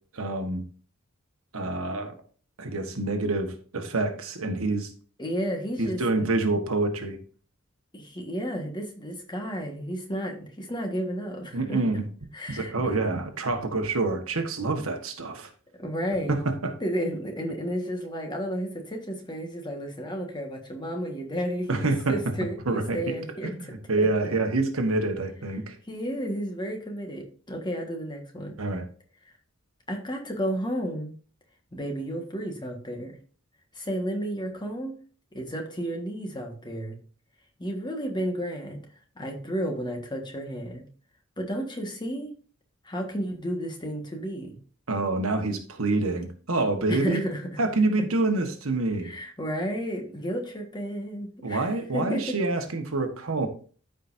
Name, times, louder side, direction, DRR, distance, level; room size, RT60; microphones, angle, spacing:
voice 1, 0.1-0.6 1.5-2.1 2.6-4.9 5.8-7.2 11.5-12.1 12.5-15.5 16.3-16.7 21.7-22.2 22.6-23.0 23.4-23.6 23.9-25.8 28.6-28.9 44.9-47.2 47.6-49.1 51.4-53.5, right 2 dB, 75° right, 1.4 m, -27 dB
voice 2, 5.2-6.3 7.9-11.8 12.3-12.9 15.8-16.4 16.8-23.7 25.9-28.5 29.9-31.1 31.7-33.2 33.7-35.0 35.3-37.0 37.6-38.8 39.1-40.8 41.4-42.3 42.8-44.5 46.9-47.4 49.0-52.4, equal, 20° left, 1.6 m, -32 dB
13.5 x 5.2 x 2.7 m
head